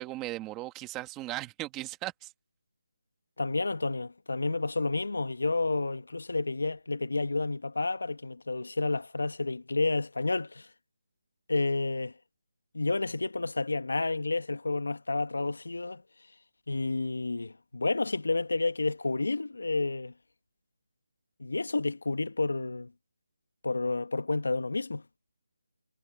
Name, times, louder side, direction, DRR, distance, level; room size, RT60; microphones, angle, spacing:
voice 1, 0.0-2.3, right 17 dB, 10° right, 1.8 m, -37 dB
voice 2, 3.4-10.7 11.5-12.1 12.7-16.0 16.7-20.1 21.4-22.9 23.6-25.0, left 3 dB, 75° left, 1.5 m, -30 dB
figure-of-eight pair, 175°, 0 cm